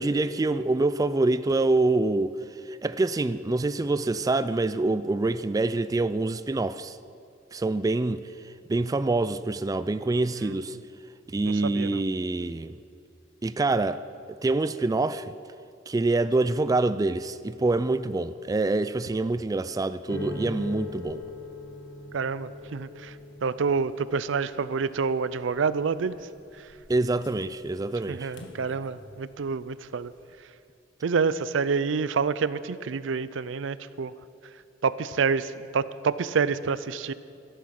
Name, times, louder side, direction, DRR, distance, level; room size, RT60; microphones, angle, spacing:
voice 1, 0.0-2.4 2.7-7.0 7.5-8.2 8.7-10.8 11.3-12.7 13.4-14.0 14.4-15.3 15.9-21.2 26.9-28.3, right 2 dB, 20° right, 0.3 m, -26 dB
voice 2, 11.4-12.0 22.1-23.1 23.4-26.2 28.1-30.1 31.0-34.1 34.8-37.1, right 5 dB, 90° right, 0.5 m, -28 dB
sound 1, 20.1-29.3 29.6-30.2, left 2 dB, 70° left, 1.4 m, -42 dB
14.0 x 11.5 x 5.9 m
head